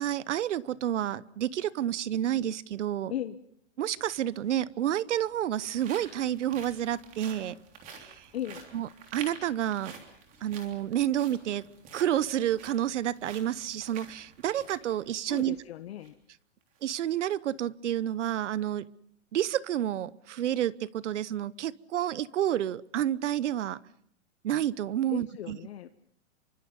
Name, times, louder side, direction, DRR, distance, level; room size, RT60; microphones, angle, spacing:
voice 1, 0.0-3.1 3.8-7.6 8.0-8.3 8.7-9.9 10.4-11.6 11.9-15.6 16.8-18.9 19.3-23.8 24.4-25.6, right 11 dB, 75° right, 1.0 m, -30 dB
sound 1, 4.0-4.1 5.0-15.6 16.0-16.1 16.6-16.8, right 6 dB, 20° right, 3.4 m, -49 dB
voice 2, 8.3-8.7 15.3-16.1 25.1-25.9, left 11 dB, 60° left, 1.1 m, -37 dB
27.5 x 24.5 x 5.4 m
hypercardioid pair, 170°, 36 cm